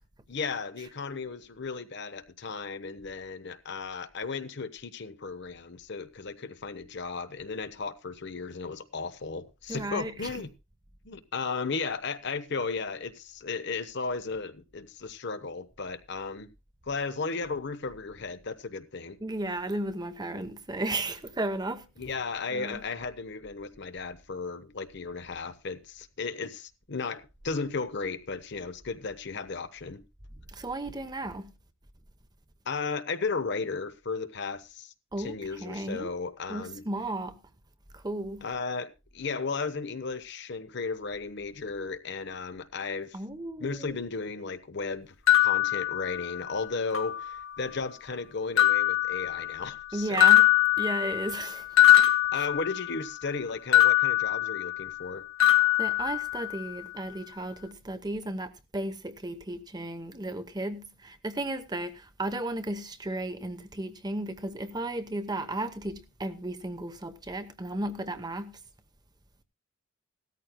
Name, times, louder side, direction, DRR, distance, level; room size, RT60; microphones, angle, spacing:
voice 1, 0.3-10.5 11.0-16.5 16.8-19.2 22.0-30.0 32.6-36.8 38.4-43.2 43.6-50.3 52.3-55.2, left 4 dB, 60° left, 0.9 m, -35 dB
voice 2, 9.7-10.3 19.2-21.9 22.5-22.8 30.5-31.5 35.1-36.1 36.5-37.4 37.9-38.4 43.1-43.9 49.9-50.5 50.8-51.6 52.4-52.5 55.8-68.6, right 1 dB, 20° right, 0.9 m, -34 dB
sound 1, 45.3-46.5 46.9-47.7 48.6-49.8 50.2-53.1 53.7-55.1 55.4-56.7, left 13 dB, 90° left, 1.8 m, -23 dB
17.0 x 13.5 x 2.2 m
head